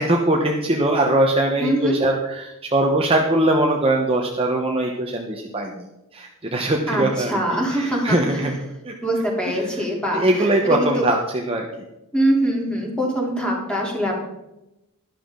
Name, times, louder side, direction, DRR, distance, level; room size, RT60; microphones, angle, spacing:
voice 1, 0.0-5.9 6.1-9.0 9.4-9.7 10.1-11.7, right 1 dB, 25° right, 1 dB, 1.1 m, -21 dB
voice 2, 1.6-2.0 6.9-8.4 9.0-11.1 12.1-14.2, right 1 dB, 5° left, -2 dB, 3.3 m, -23 dB
12.5 x 12.0 x 3.9 m, 0.92 s
head